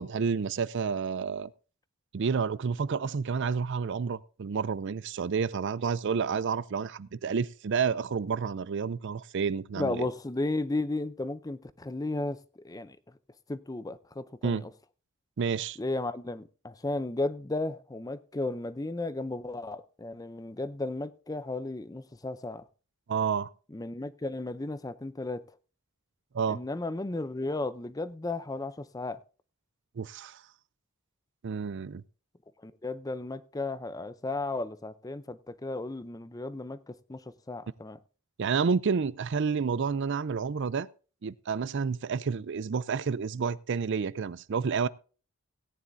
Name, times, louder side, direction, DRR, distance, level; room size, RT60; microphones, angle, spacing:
voice 1, 0.0-1.5 2.1-10.1 14.4-14.7 15.4-15.8 23.1-23.5 26.3-26.6 30.0-30.4 31.4-32.0 38.4-40.9 41.2-44.9, right 5 dB, 55° right, 0.4 m, -30 dB
voice 2, 9.8-12.4 12.6-13.0 13.5-14.7 15.8-22.6 23.7-25.4 26.5-29.2 32.6-37.2 37.5-38.0, left 2 dB, 15° left, 0.5 m, -34 dB
17.0 x 9.9 x 2.6 m
head